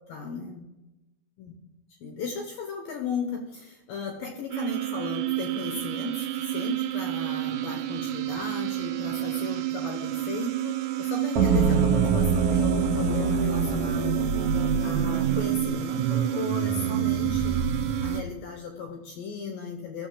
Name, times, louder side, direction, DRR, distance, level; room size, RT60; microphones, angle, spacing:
voice 1, 0.1-0.7 1.4-1.5 2.0-14.2 14.8-17.6 18.0-20.1, left 4 dB, 75° left, 4 dB, 2.1 m, -36 dB
sound 1, 4.5-18.2, right 16 dB, 80° right, 2.3 m, -29 dB
sound 2, 11.4-18.3, right 4 dB, 50° right, 1.9 m, -26 dB
15.5 x 6.4 x 3.8 m, 1.0 s
omnidirectional pair, 5.1 m